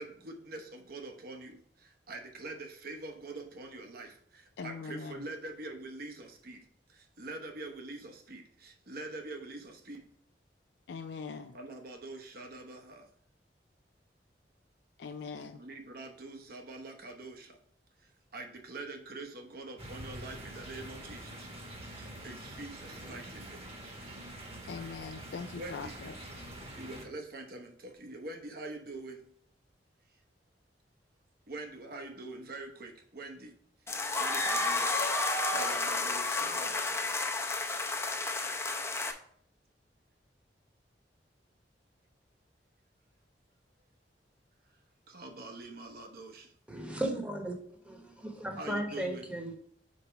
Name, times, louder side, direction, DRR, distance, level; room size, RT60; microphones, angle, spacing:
voice 1, 0.0-10.1 11.5-13.1 15.5-17.6 18.0-21.5 21.8-23.6 25.6-25.9 26.7-29.3 31.5-33.5 34.1-35.1 35.5-37.1 45.1-46.5 48.6-49.3, right 2 dB, 60° right, 1.1 m, -45 dB
voice 2, 4.6-5.2 10.9-11.6 15.0-15.6 24.6-26.1, left 5 dB, 70° left, 0.4 m, -41 dB
sound 1, 19.8-27.0, right 1 dB, 35° right, 1.3 m, -45 dB
sound 2, 33.9-39.1, left 3 dB, 15° left, 0.6 m, -31 dB
voice 3, 46.7-47.5 47.8-49.5, right 1 dB, 5° right, 1.1 m, -35 dB
5.2 x 4.4 x 5.1 m
head